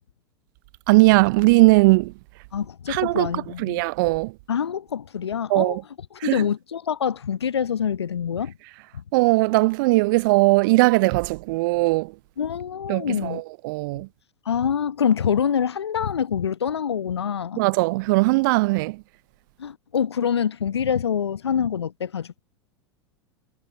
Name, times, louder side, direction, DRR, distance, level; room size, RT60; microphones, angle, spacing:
voice 1, 0.9-2.1 2.9-3.3 3.6-4.3 5.5-5.8 6.2-6.4 9.1-12.1 12.9-14.1 17.6-19.0, right 24 dB, 50° right, 0.5 m, -19 dB
voice 2, 2.5-3.8 4.5-5.8 6.1-8.5 12.4-13.4 14.5-17.6 19.6-22.4, left 8 dB, 75° left, 1.0 m, -25 dB
figure-of-eight pair, 85°, 14 cm